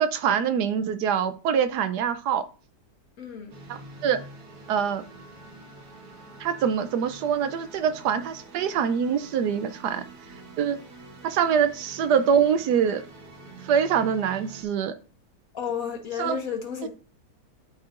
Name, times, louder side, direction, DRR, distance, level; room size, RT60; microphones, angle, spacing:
voice 1, 0.0-2.4 3.7-4.2 4.7-5.0 6.4-10.0 10.6-10.8 11.2-13.0 13.6-14.9 16.2-16.4, right 7 dB, 75° right, 1.1 m, -24 dB
voice 2, 3.2-3.6 15.5-16.9, left 7 dB, 55° left, 1.6 m, -32 dB
sound 1, 3.5-14.6, right 2 dB, 60° right, 1.7 m, -46 dB
12.0 x 4.3 x 2.5 m
omnidirectional pair, 1.9 m